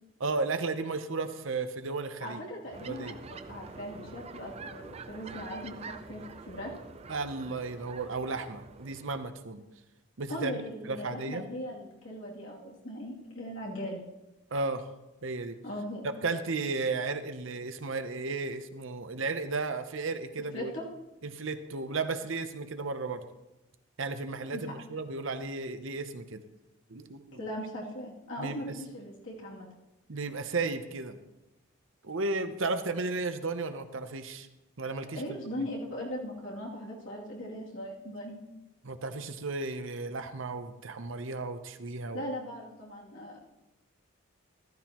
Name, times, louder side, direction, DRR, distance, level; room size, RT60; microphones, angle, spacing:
voice 1, 0.2-2.4 2.8-3.2 7.1-9.6 10.2-10.6 10.9-11.5 14.5-14.9 15.2-15.6 16.2-20.7 21.2-23.3 24.0-26.4 26.9-27.4 28.4-28.8 30.1-31.2 32.0-34.5 34.8-35.4 38.8-42.2, right 3 dB, 65° right, 9 dB, 0.8 m, -34 dB
voice 2, 2.2-6.7 10.3-14.0 15.6-16.1 20.5-20.9 24.5-24.6 27.3-29.7 35.0-38.4 42.1-43.4, equal, 60° left, -3 dB, 2.8 m, -39 dB
sound 1, 2.7-9.3, right 4 dB, 30° right, 0.4 m, -46 dB
14.0 x 12.5 x 3.0 m, 0.96 s
head